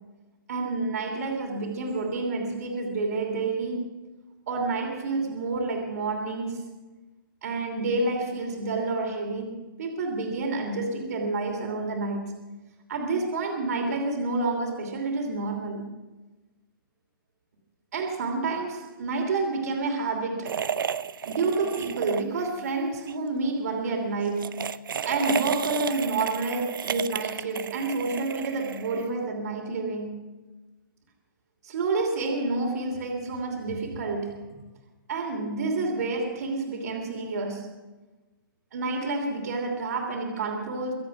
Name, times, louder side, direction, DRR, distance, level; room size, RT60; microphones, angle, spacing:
voice 1, 0.5-3.8 4.5-6.6 7.4-12.3 12.9-15.9 17.9-20.6 21.2-24.6 25.0-30.3 31.6-34.4 35.1-37.8 38.7-40.9, right 3 dB, 45° right, 2.9 m, -29 dB
sound 1, 20.4-22.7 22.9-23.1 24.2-29.2, right 7 dB, 70° right, 0.7 m, -33 dB
24.0 x 8.1 x 6.1 m
hypercardioid pair, 170°, 12 cm